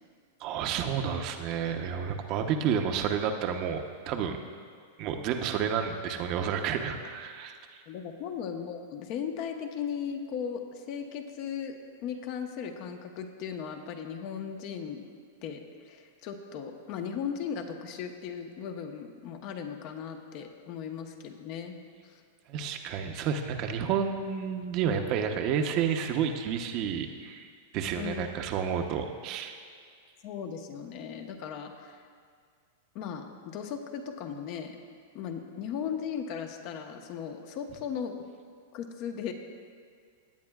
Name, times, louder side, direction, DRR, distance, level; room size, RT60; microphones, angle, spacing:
voice 1, 0.4-4.4 5.0-7.8 22.5-29.6, right 7 dB, 45° right, 5 dB, 0.8 m, -30 dB
voice 2, 7.9-11.7 12.0-15.0 15.4-21.8 22.0-22.2 28.0-28.3 30.2-32.0 32.9-34.8 35.1-38.1 38.7-39.3, left 7 dB, 50° left, 5 dB, 1.1 m, -37 dB
18.0 x 8.7 x 2.4 m, 2.1 s
hypercardioid pair, 110°, 0 cm